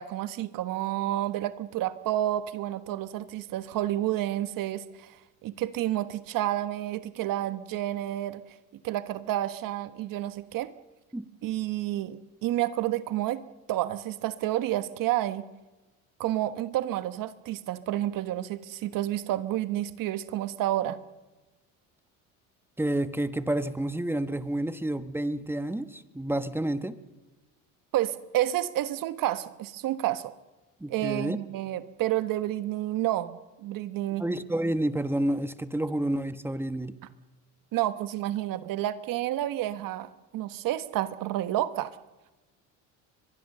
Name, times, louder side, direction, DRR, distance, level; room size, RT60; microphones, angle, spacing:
voice 1, 0.0-8.4 8.8-10.7 11.4-13.4 13.7-15.4 16.2-21.0 27.9-30.3 30.9-34.2 37.7-41.9, right 14 dB, 65° right, 12 dB, 1.3 m, -30 dB
voice 2, 22.8-27.0 30.8-31.4 34.2-36.9, right 1 dB, 5° right, 11 dB, 1.2 m, -29 dB
22.5 x 22.5 x 6.7 m, 1.2 s
supercardioid pair, 95°, 36 cm